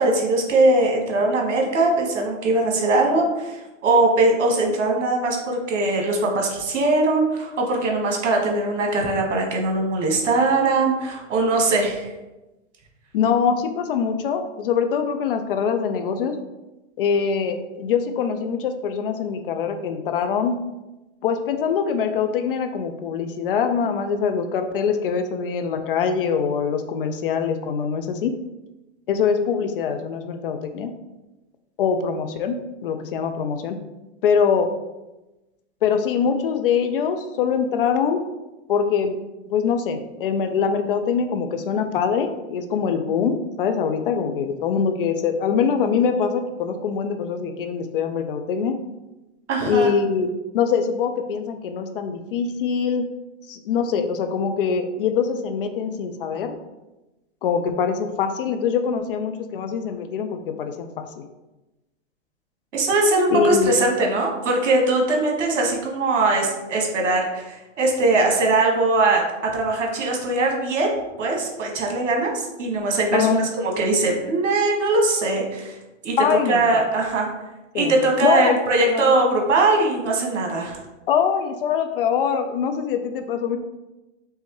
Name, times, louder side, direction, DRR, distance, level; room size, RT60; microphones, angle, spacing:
voice 1, 0.0-12.1 49.5-49.9 62.7-70.9 71.2-75.8 76.0-77.3 77.7-80.8, right 2 dB, 70° right, 1 dB, 1.4 m, -21 dB
voice 2, 13.1-16.3 17.0-20.6 21.2-28.3 29.1-30.9 31.8-33.8 34.2-34.7 35.8-38.2 38.7-39.2 39.5-48.8 49.7-50.3 50.5-53.1 53.5-56.5 57.4-61.3 63.3-63.7 73.1-73.4 76.2-76.8 77.7-77.9 78.2-79.1 81.1-83.6, left 6 dB, 50° left, 8 dB, 0.5 m, -23 dB
4.6 x 3.3 x 3.0 m, 1.0 s
hypercardioid pair, 135°, 37 cm